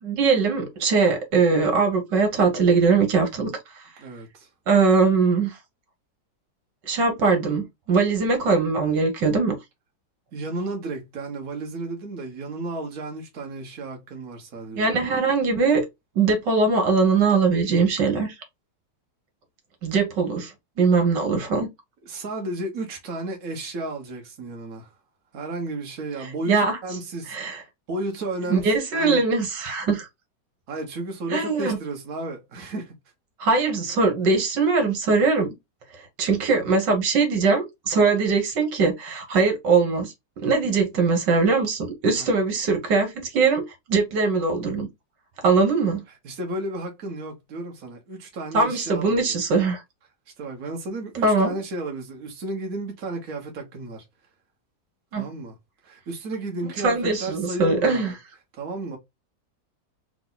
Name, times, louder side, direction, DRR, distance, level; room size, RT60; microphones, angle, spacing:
voice 1, 0.0-3.5 3.8-3.9 4.7-5.6 6.9-9.5 14.7-15.8 16.2-18.4 19.8-21.7 26.5-26.8 27.3-27.6 28.5-30.1 31.3-31.8 33.4-35.5 36.2-40.1 40.4-43.6 43.9-44.9 45.4-46.0 48.5-49.8 51.2-51.5 55.1-55.3 56.8-58.1, right 4 dB, 80° right, 1.9 m, -21 dB
voice 2, 4.0-4.5 10.3-14.9 22.1-24.9 25.3-27.6 27.9-29.2 30.7-32.9 42.1-42.3 46.1-49.4 50.4-54.0 55.2-55.6 55.8-58.1 58.5-59.0, right 2 dB, 55° right, 1.6 m, -33 dB
3.8 x 3.1 x 3.9 m
omnidirectional pair, 1.9 m